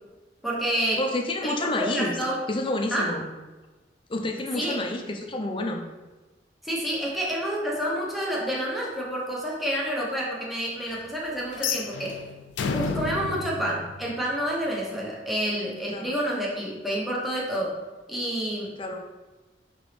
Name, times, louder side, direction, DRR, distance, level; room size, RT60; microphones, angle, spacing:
voice 1, 0.4-1.0 1.4-2.4 2.9-3.1 4.6-4.8 6.6-12.2 12.7-17.8 18.1-18.8, equal, ahead, -5 dB, 0.8 m, -29 dB
voice 2, 1.0-2.1 2.5-3.2 4.1-5.8 15.9-16.1 18.8-19.0, left 2 dB, 30° left, 4 dB, 0.5 m, -29 dB
sound 1, 11.5-14.6, left 5 dB, 90° left, 0.4 m, -31 dB
5.3 x 3.0 x 3.2 m, 1.2 s
head